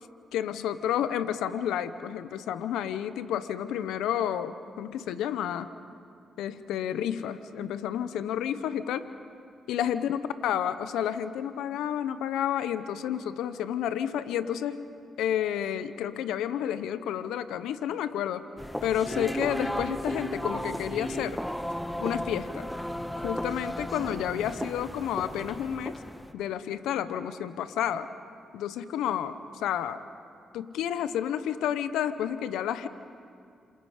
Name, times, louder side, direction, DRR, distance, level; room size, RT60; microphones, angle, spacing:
voice 1, 0.3-5.7 6.4-9.1 9.7-14.8 15.2-18.5 18.8-21.4 22.0-22.7 23.2-26.0 26.3-28.1 28.5-30.0 30.5-32.9, left 10 dB, 85° left, 13 dB, 0.8 m, -30 dB
sound 1, 18.6-26.3, equal, 5° left, 1.2 m, -34 dB
27.5 x 27.0 x 5.0 m, 2.3 s
supercardioid pair, 50°, 0 cm